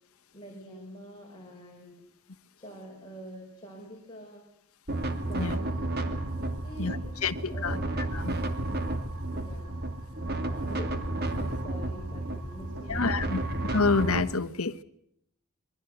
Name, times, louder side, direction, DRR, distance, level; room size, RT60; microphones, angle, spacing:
voice 1, 0.3-2.0 2.6-4.4 5.3-6.0 6.6-7.9 9.3-10.2 10.5-10.9 11.3-13.5, equal, 20° left, -1 dB, 6.1 m, -46 dB
sound 1, 4.9-14.2, right 1 dB, 45° right, 2.5 m, -32 dB
voice 2, 7.2-7.8 8.1-8.4 12.9-13.4 13.7-14.8, left 4 dB, 70° left, 11 dB, 1.2 m, -27 dB
27.0 x 23.0 x 7.9 m, 0.73 s
head